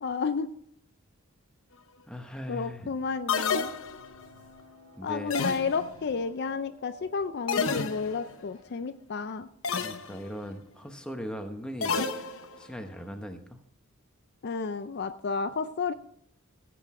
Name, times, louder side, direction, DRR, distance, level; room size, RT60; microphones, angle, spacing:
voice 1, 0.0-0.5 2.5-3.7 5.0-9.5 14.4-15.9, left 5 dB, 50° left, 11 dB, 0.4 m, -31 dB
voice 2, 2.1-3.0 5.0-5.4 9.8-12.0 12.6-13.6, equal, 5° left, 5 dB, 1.0 m, -39 dB
sound 1, 3.3-4.3 5.3-6.1 7.5-8.3 9.6-10.2 11.8-12.7, left 5 dB, 65° left, 0.9 m, -30 dB
sound 2, 3.6-8.6, equal, 80° right, 5.0 m, -55 dB
16.5 x 7.8 x 3.7 m, 0.68 s
head